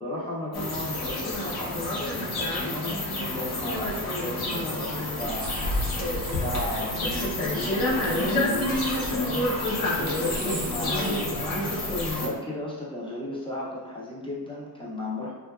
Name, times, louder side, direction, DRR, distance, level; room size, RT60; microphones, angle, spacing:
voice 1, 0.0-5.8 6.4-15.3, left 1 dB, 15° left, -5 dB, 0.5 m, -35 dB
sound 1, 0.5-12.3, left 1 dB, 80° left, 0.8 m, -28 dB
sound 2, 5.2-12.3, right 1 dB, 50° right, 0.4 m, -40 dB
2.7 x 2.3 x 2.3 m, 1.2 s
cardioid pair, 145°, 37 cm